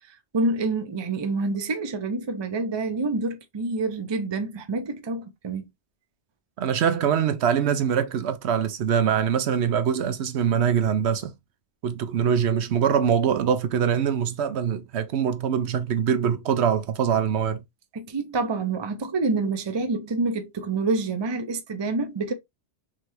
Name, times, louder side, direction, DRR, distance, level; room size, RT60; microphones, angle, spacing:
voice 1, 0.1-5.7 17.9-22.3, right 3 dB, 30° right, 0.5 m, -27 dB
voice 2, 6.6-11.3 11.8-17.6, right 8 dB, 70° right, 0.9 m, -23 dB
3.7 x 3.3 x 3.0 m
omnidirectional pair, 1.2 m